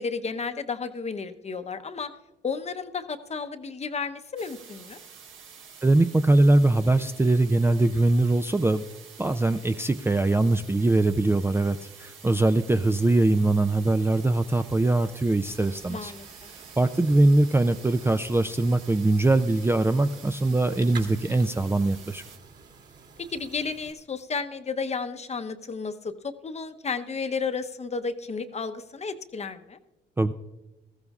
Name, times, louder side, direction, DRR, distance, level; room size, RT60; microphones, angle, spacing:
voice 1, 0.0-2.1 2.4-5.0 15.9-16.5 23.2-29.8, left 5 dB, 35° left, 9 dB, 0.8 m, -32 dB
sound 1, 4.4-22.4, right 6 dB, 80° right, 1.5 m, -48 dB
voice 2, 5.8-8.8 9.2-16.1 16.8-22.2 30.2-30.3, right 2 dB, 10° right, 9 dB, 0.4 m, -22 dB
sound 2, 15.4-23.9, right 5 dB, 55° right, 2.7 m, -49 dB
19.5 x 14.5 x 2.4 m, 1.0 s
cardioid pair, 90°, 20 cm